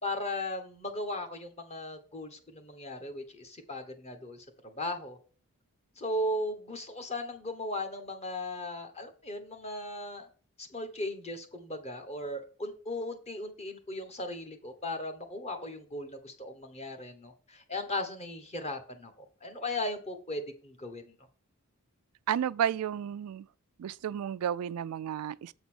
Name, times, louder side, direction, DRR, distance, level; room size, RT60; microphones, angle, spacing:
voice 1, 0.0-5.2 6.0-10.3 10.6-21.1, left 1 dB, 30° left, 1.2 m, -37 dB
voice 2, 22.3-23.5 23.8-25.5, right 9 dB, 80° right, 0.3 m, -32 dB
7.8 x 4.0 x 6.1 m
head